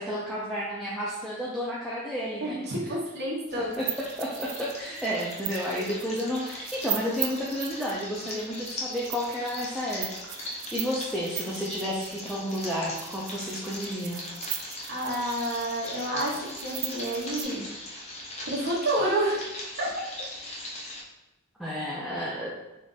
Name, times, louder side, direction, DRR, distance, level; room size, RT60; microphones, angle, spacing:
voice 1, 0.0-2.9 3.6-10.1 10.4-14.2 20.8-20.9 21.6-22.5, equal, ahead, -7 dB, 0.5 m, -32 dB
voice 2, 2.4-3.8 14.9-17.6 18.5-19.4 19.8-19.9, right 1 dB, 50° right, -4 dB, 1.0 m, -29 dB
sound 1, 3.5-21.0, left 1 dB, 30° left, 0.7 m, -40 dB
sound 2, 3.7-17.4, right 11 dB, 90° right, 0.4 m, -38 dB
3.5 x 2.5 x 4.0 m, 0.98 s
head